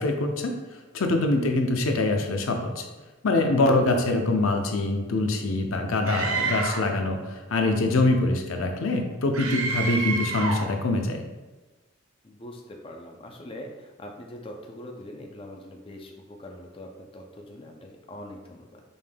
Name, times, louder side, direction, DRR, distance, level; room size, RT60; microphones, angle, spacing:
voice 1, 0.0-2.9 3.2-11.2, left 2 dB, 75° left, 4 dB, 0.5 m, -24 dB
Screaming, 6.0-6.9 9.3-10.7, right 4 dB, 85° right, 0.6 m, -28 dB
voice 2, 12.2-18.8, left 1 dB, 25° left, 1 dB, 0.4 m, -43 dB
5.3 x 3.4 x 2.2 m, 1.2 s
head